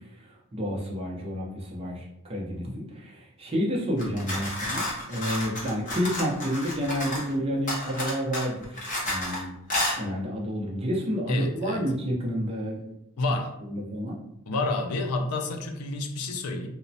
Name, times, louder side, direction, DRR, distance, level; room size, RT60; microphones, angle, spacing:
voice 1, 0.1-9.5 9.9-12.9 13.7-14.2, equal, 25° right, -3 dB, 0.5 m, -30 dB
sound 1, 4.0-7.3 7.7-9.4 9.7-10.0, left 1 dB, 35° left, 0.7 m, -31 dB
voice 2, 11.3-11.8 13.2-13.6 14.5-16.7, left 2 dB, 85° left, 5 dB, 0.4 m, -29 dB
3.0 x 2.1 x 2.6 m, 0.85 s
head